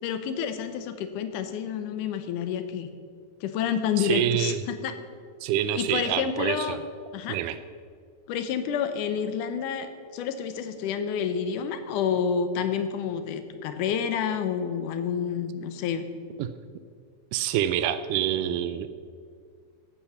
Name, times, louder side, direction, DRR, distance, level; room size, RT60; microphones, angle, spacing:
voice 1, 0.0-2.9 3.4-4.9 5.8-6.8 7.1-7.4 8.3-16.0, left 7 dB, 80° left, 9 dB, 2.4 m, -29 dB
voice 2, 4.0-4.6 5.4-6.8 7.3-7.6 16.4-16.5 17.3-18.9, right 11 dB, 90° right, 11 dB, 2.1 m, -26 dB
14.5 x 8.7 x 5.7 m, 2.2 s
omnidirectional pair, 3.6 m